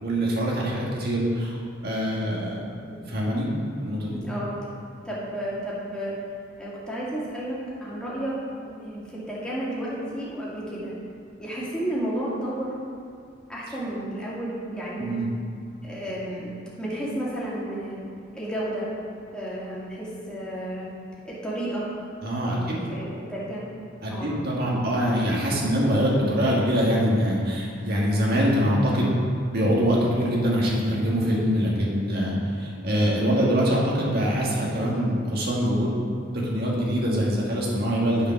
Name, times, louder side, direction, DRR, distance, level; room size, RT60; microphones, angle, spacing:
voice 1, 0.0-3.5 3.8-4.2 15.0-15.3 22.2-22.7 24.0-29.1 29.5-36.0 36.3-38.3, equal, 55° right, -4 dB, 1.8 m, -24 dB
voice 2, 5.0-6.1 6.6-10.9 11.4-12.7 13.5-15.2 15.8-16.5 16.8-18.0 18.3-18.9 19.3-20.9 21.3-21.9 22.5-23.6 24.1-24.3, right 1 dB, 5° left, -8 dB, 2.1 m, -32 dB
9.4 x 5.0 x 5.9 m, 2.3 s
head